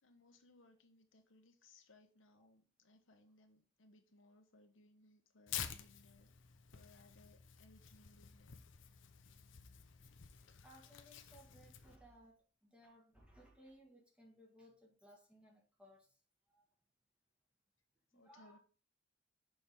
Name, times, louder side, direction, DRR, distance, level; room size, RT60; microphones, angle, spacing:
voice 1, 0.0-6.3 6.7-8.5 18.1-18.6, left 2 dB, 90° left, 1.1 m, -66 dB
Tearing, 5.5-12.0, left 9 dB, 75° left, 0.7 m, -50 dB
voice 2, 10.6-16.1 16.5-16.6 18.1-18.6, equal, 5° right, 1.5 m, -63 dB
6.4 x 4.7 x 3.5 m
head